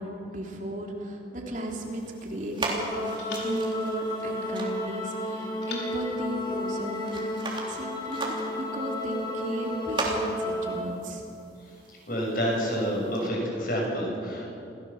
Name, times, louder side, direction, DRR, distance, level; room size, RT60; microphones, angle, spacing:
voice 1, 0.0-7.4 7.7-11.2, right 1 dB, 45° right, 0 dB, 3.2 m, -35 dB
sound 1, 1.4-2.6 3.2-4.8 5.6-7.2, left 4 dB, 75° left, 4.8 m, -46 dB
sound 2, 1.7-13.3, right 2 dB, 25° right, 3.2 m, -39 dB
sound 3, 2.7-10.8, left 1 dB, 25° left, 3.4 m, -32 dB
voice 2, 12.1-14.5, equal, 50° left, -2 dB, 7.2 m, -28 dB
27.5 x 17.0 x 7.2 m, 2.7 s
head